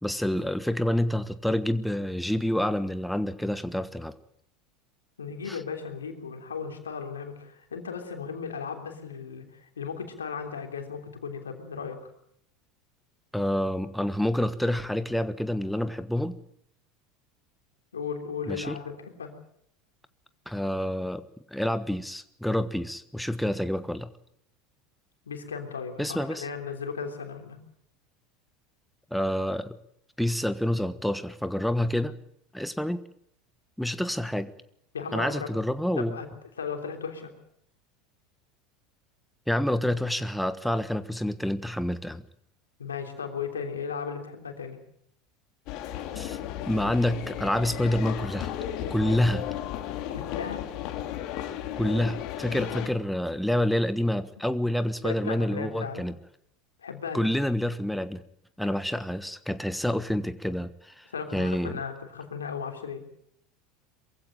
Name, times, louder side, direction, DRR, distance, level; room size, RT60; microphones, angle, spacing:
voice 1, 0.0-4.2 5.5-5.6 13.3-16.3 18.5-18.8 20.5-21.2 21.5-24.1 26.0-26.5 29.1-29.8 30.2-32.2 32.5-33.0 33.8-34.5 35.1-36.1 39.5-42.2 46.1-46.4 46.6-48.5 48.9-49.4 51.8-56.1 57.1-58.2 58.6-61.8, left 1 dB, ahead, 12 dB, 1.3 m, -28 dB
voice 2, 5.2-12.0 17.9-19.3 25.2-27.6 34.9-35.5 36.0-36.3 36.6-37.3 42.8-44.8 50.1-50.6 55.0-56.1 56.8-57.3 61.1-63.0, left 6 dB, 90° left, 5 dB, 3.2 m, -36 dB
sound 1, 45.7-52.9, left 11 dB, 55° left, 2.6 m, -34 dB
23.0 x 15.5 x 9.0 m, 0.72 s
hypercardioid pair, 85°, 0 cm